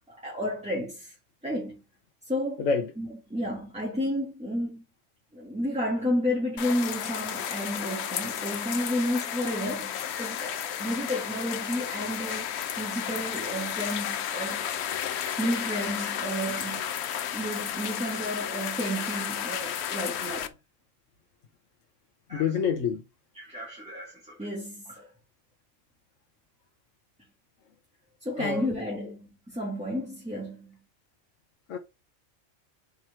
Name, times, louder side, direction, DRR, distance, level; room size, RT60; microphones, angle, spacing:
voice 1, 0.1-1.1 1.4-1.8 2.2-2.6 3.0-4.8 5.3-12.5 12.8-14.7 15.4-16.8 17.3-20.5 22.3-22.5 23.3-25.1 28.2-30.8, equal, 5° right, 1.6 m, -32 dB
voice 2, 2.6-2.9 22.3-23.0 28.4-28.7 31.7-31.8, left 6 dB, 80° left, 1.3 m, -27 dB
sound 1, 6.6-20.5, left 9 dB, 65° left, 0.9 m, -33 dB
5.4 x 4.4 x 4.8 m
omnidirectional pair, 1.3 m